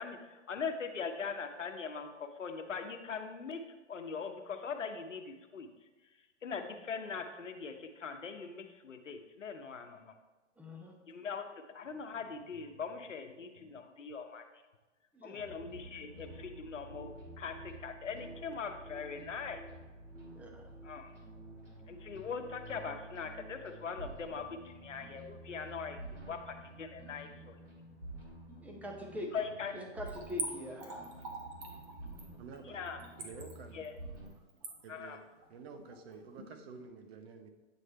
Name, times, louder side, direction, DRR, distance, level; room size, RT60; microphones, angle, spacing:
voice 1, 0.0-3.6 3.9-5.7 6.4-10.1 11.1-11.4 11.7-14.4 15.2-17.1 17.4-19.6 20.8-21.1 21.9-24.4 24.8-26.0 26.3-27.6 29.3-29.7 32.7-33.0 33.7-33.9 34.9-35.2, left 5 dB, 85° left, 6 dB, 0.9 m, -41 dB
voice 2, 10.6-11.0 15.1-15.5 20.3-20.8 28.6-29.3 29.7-31.2, left 1 dB, 5° right, 1 dB, 0.7 m, -44 dB
sound 1, 15.4-34.3, right 1 dB, 80° right, 2.1 m, -50 dB
Splash splatter / Trickle dribble, 30.1-36.5 36.8-36.9, right 3 dB, 35° right, 1.2 m, -44 dB
voice 3, 32.4-32.8 33.2-33.8 34.8-35.2 35.5-37.5, right 4 dB, 55° right, 6 dB, 0.9 m, -49 dB
8.6 x 3.3 x 4.2 m, 1.2 s
hypercardioid pair, 120°, 36 cm